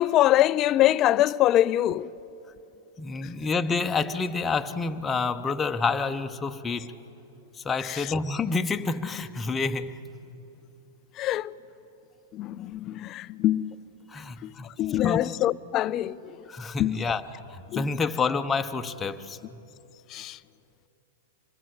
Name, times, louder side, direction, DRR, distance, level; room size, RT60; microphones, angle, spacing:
voice 1, 0.0-2.1 7.8-8.1 11.2-11.6 12.3-13.8 14.4-16.4 16.8-17.2 17.7-17.9 20.1-20.4, left 13 dB, 35° left, 0.5 m, -24 dB
voice 2, 3.0-6.9 7.6-10.0 14.1-14.7 15.0-15.2 16.5-19.4, left 4 dB, 15° left, 1.0 m, -28 dB
26.0 x 20.5 x 7.9 m
hypercardioid pair, 110°, 0 cm